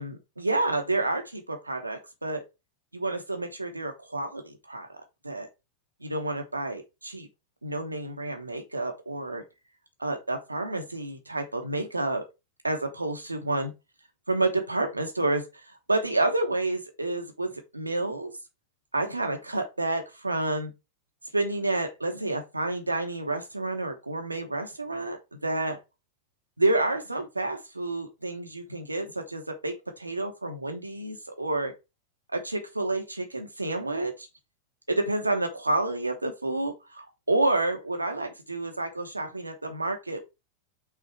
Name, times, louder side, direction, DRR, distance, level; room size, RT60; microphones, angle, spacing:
voice 1, 0.0-2.4 2.9-4.9 5.2-5.5 6.0-7.3 7.6-9.4 10.0-12.2 12.6-13.7 14.3-18.3 18.9-20.7 21.3-25.8 26.6-31.7 32.3-34.3 34.9-40.2, right 2 dB, 80° right, 0.9 m, -29 dB
5.8 x 3.6 x 4.4 m
figure-of-eight pair, 90°, 0 cm